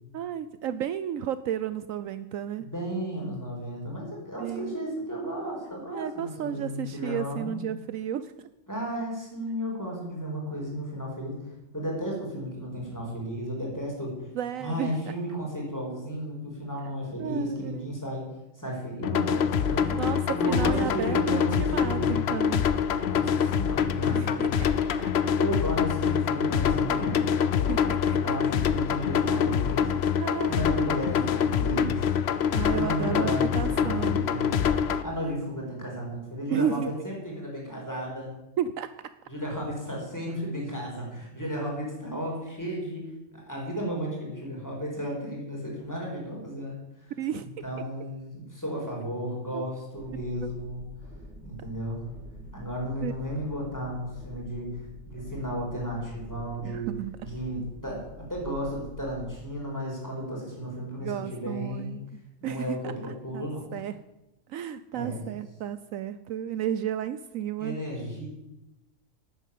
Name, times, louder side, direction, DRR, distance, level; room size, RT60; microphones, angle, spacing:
voice 1, 0.1-2.6 4.4-4.8 5.9-8.5 14.3-14.9 17.2-17.9 19.9-22.6 24.1-24.5 27.7-28.4 30.2-30.7 32.5-33.3 33.5-34.2 36.5-36.9 38.6-38.9 47.2-47.5 49.5-49.7 50.4-50.5 53.0-53.1 56.6-57.2 61.0-62.0 62.4-62.9 63.3-64.0 64.5-67.8, right 10 dB, 70° right, 13 dB, 1.0 m, -33 dB
voice 2, 2.6-7.5 8.7-11.3 11.7-14.3 14.6-18.2 18.5-20.0 20.3-22.4 23.1-24.5 25.3-27.3 28.1-29.9 30.5-32.1 32.7-34.6 35.0-38.3 39.3-43.0 43.3-47.1 47.6-50.8 51.4-52.0 52.5-54.7 55.1-56.9 57.2-58.0 58.3-62.0 62.4-63.7 64.9-65.3 67.6-68.3, equal, 10° left, -2 dB, 4.8 m, -33 dB
sound 1, 19.0-35.0, left 8 dB, 55° left, 0.9 m, -25 dB
sound 2, 49.9-59.4, equal, 50° right, 5.4 m, -46 dB
12.0 x 9.2 x 8.5 m, 0.95 s
omnidirectional pair, 1.5 m